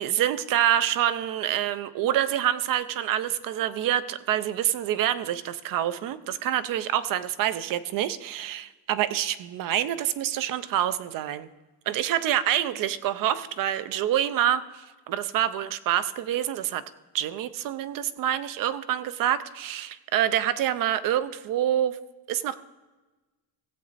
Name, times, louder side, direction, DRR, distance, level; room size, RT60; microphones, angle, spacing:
voice 1, 0.0-11.5 11.9-16.8 17.1-22.0 22.3-22.6, right 11 dB, 50° right, 14 dB, 0.5 m, -26 dB
16.5 x 7.6 x 4.1 m, 1.2 s
cardioid pair, 180°, 45 cm